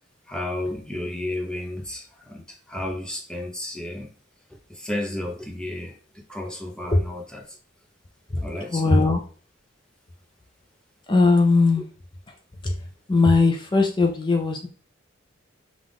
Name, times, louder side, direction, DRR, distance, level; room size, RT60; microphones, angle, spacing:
voice 1, 0.3-4.1 4.7-6.0 6.3-7.6 8.4-9.0, left 1 dB, 5° left, 0 dB, 0.9 m, -32 dB
voice 2, 8.7-9.2 11.1-11.8 12.6-12.7 13.1-14.7, left 3 dB, 25° left, 3 dB, 0.4 m, -19 dB
5.7 x 2.5 x 3.5 m, 0.40 s
head